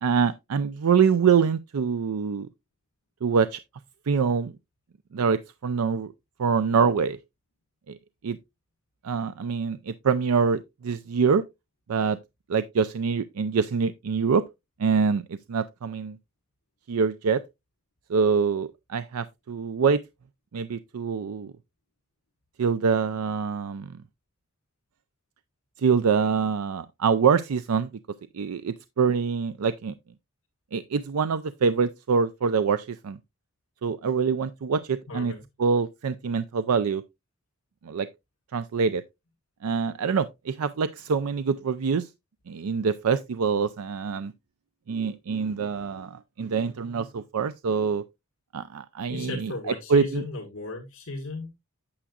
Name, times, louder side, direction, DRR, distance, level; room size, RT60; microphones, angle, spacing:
voice 1, 0.0-2.5 3.2-3.6 4.1-4.5 5.1-6.1 6.4-7.2 7.9-8.0 8.2-8.4 9.0-11.4 11.9-12.2 12.5-14.4 14.8-16.2 16.9-17.4 18.1-20.0 20.5-21.5 22.6-23.9 25.8-27.9 28.3-29.9 30.7-33.2 33.8-35.3 35.6-37.0 37.8-38.1 38.5-39.0 39.6-42.1 42.5-44.3 44.9-48.0 48.5-50.2, right 5 dB, 85° right, 0.4 m, -25 dB
voice 2, 35.1-35.4 49.1-51.6, left 2 dB, 65° left, 1.7 m, -35 dB
8.6 x 8.0 x 2.4 m
head